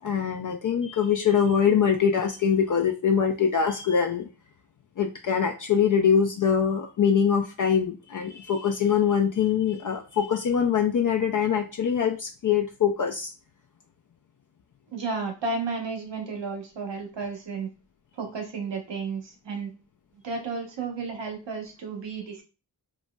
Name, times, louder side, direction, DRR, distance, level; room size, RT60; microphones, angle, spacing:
voice 1, 0.0-4.3 5.0-13.3, left 7 dB, 45° left, 3 dB, 0.4 m, -23 dB
voice 2, 14.9-17.7 18.2-19.7 20.2-22.4, right 4 dB, 75° right, 2 dB, 1.0 m, -32 dB
4.0 x 2.1 x 2.2 m, 0.32 s
cardioid pair, 45°, 44 cm